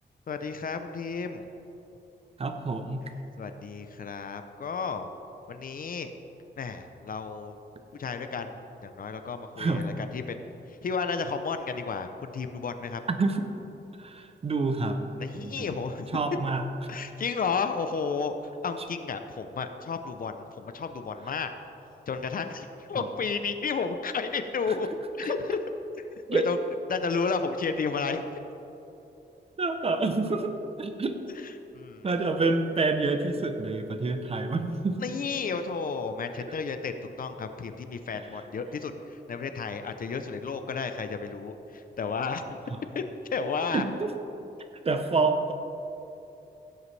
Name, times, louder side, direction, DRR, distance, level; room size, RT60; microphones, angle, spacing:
voice 1, 0.3-1.5 3.4-5.1 5.5-6.1 6.6-7.6 7.9-10.5 10.8-13.0 15.2-16.2 16.9-18.3 18.6-21.5 22.1-24.9 25.2-25.6 25.9-26.0 26.3-26.6 26.9-28.4 31.4-32.1 35.0-42.6 42.9-43.0 43.3-43.9, left 5 dB, 50° left, 8 dB, 0.6 m, -32 dB
voice 2, 2.4-3.1 9.6-9.9 13.1-13.5 14.0-15.0 15.3-15.8 16.1-17.0 22.9-23.1 26.3-26.5 29.6-30.5 30.8-31.1 32.0-35.0 43.7-44.1 44.8-45.5, right 3 dB, 30° right, 6 dB, 0.6 m, -28 dB
16.0 x 7.9 x 3.2 m, 3.0 s
wide cardioid pair, 170°, 19 cm